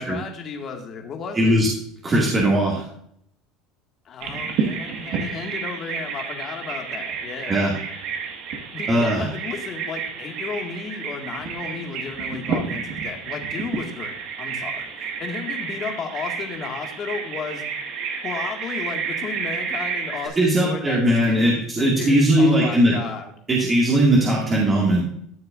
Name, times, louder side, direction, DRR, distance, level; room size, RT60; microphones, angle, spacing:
voice 1, 0.0-1.6 4.1-7.7 8.7-17.7 18.2-23.3, left 5 dB, 35° left, 2 dB, 2.0 m, -34 dB
voice 2, 1.3-1.7 2.0-2.8 7.5-7.7 8.9-9.3 20.4-23.0 23.5-25.0, right 1 dB, 20° right, -4 dB, 2.3 m, -19 dB
Bird vocalization bird call bird song, 4.2-20.3, right 6 dB, 55° right, 1.8 m, -30 dB
13.5 x 6.6 x 2.6 m, 0.68 s
cardioid pair, 140°, 0 cm